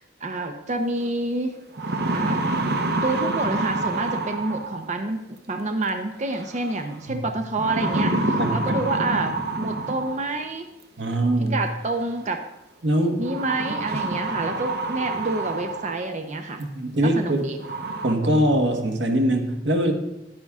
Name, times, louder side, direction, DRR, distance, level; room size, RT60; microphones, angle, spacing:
voice 1, 0.0-1.6 2.1-2.4 3.0-5.2 5.5-10.7 11.5-12.4 13.2-16.6 17.2-17.6, right 2 dB, 40° right, 6 dB, 0.7 m, -28 dB
sound 1, 1.0-1.1 1.6-5.0 6.4-6.8 7.6-10.4 11.6-11.7 13.2-16.1 16.6-16.7 17.2-17.3 17.6-18.1, right 2 dB, 65° right, 1.0 m, -27 dB
voice 2, 11.0-11.6 12.8-13.2 16.7-17.4 18.0-19.9, right 1 dB, 85° right, 4 dB, 1.3 m, -22 dB
10.5 x 9.6 x 3.6 m, 0.91 s
head